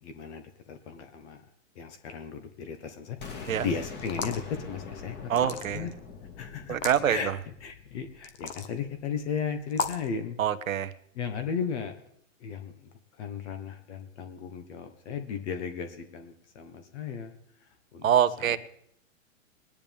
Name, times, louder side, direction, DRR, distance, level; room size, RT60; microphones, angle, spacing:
voice 1, 0.0-1.4 1.7-5.9 6.4-6.8 7.0-10.4 11.1-11.9 12.4-17.3 17.6-18.1 18.4-18.6, left 6 dB, 55° left, 7 dB, 1.5 m, -36 dB
sound 1, 3.2-9.0, left 5 dB, 25° left, 2.0 m, -43 dB
sound 2, 4.0-4.5 5.3-5.9 6.7-7.0 8.2-8.7 9.7-10.1, left 6 dB, 70° left, 1.5 m, -34 dB
voice 2, 5.3-5.9 6.7-7.3 10.4-10.9 18.0-18.6, right 9 dB, 80° right, 12 dB, 1.0 m, -25 dB
21.5 x 10.5 x 3.5 m, 0.70 s
hypercardioid pair, 130°, 40 cm